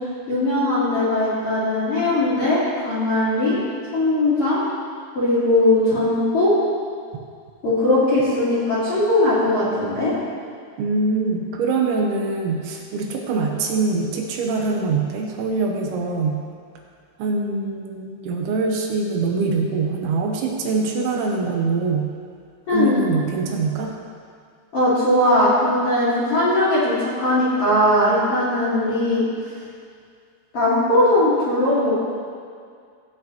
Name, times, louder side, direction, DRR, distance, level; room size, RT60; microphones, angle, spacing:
voice 1, 0.3-3.6 3.9-4.6 5.1-6.5 7.6-10.1 22.7-22.9 24.7-29.2 30.5-32.0, left 1 dB, 40° left, -11 dB, 2.3 m, -19 dB
voice 2, 10.8-16.4 17.2-22.1 22.7-23.9, right 4 dB, 80° right, 0 dB, 3.3 m, -23 dB
16.5 x 8.3 x 3.0 m, 2.2 s
omnidirectional pair, 5.4 m